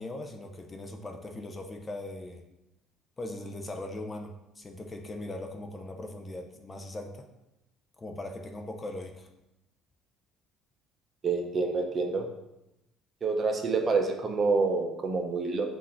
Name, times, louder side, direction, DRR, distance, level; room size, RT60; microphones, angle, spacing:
voice 1, 0.0-2.4 3.2-7.3 8.0-9.3, left 1 dB, 25° left, 4 dB, 0.5 m, -40 dB
voice 2, 11.2-12.3 13.2-15.6, right 4 dB, 35° right, 3 dB, 0.6 m, -27 dB
3.7 x 2.6 x 4.3 m, 0.91 s
supercardioid pair, 95°, 0 cm